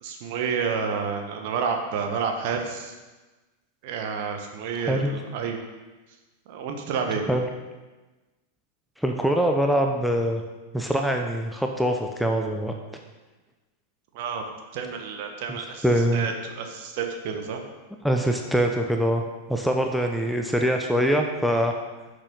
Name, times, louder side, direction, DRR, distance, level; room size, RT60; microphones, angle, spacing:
voice 1, 0.0-2.9 3.8-5.6 6.5-7.3 14.1-14.4 14.7-15.8 16.1-17.6, right 6 dB, 50° right, 4 dB, 1.6 m, -29 dB
voice 2, 9.0-10.4 10.7-12.7 15.5-15.6 15.8-16.3 18.0-19.2 19.5-21.7, equal, ahead, 2 dB, 1.0 m, -23 dB
10.0 x 6.9 x 5.5 m, 1.2 s
figure-of-eight pair, 90°, 0 cm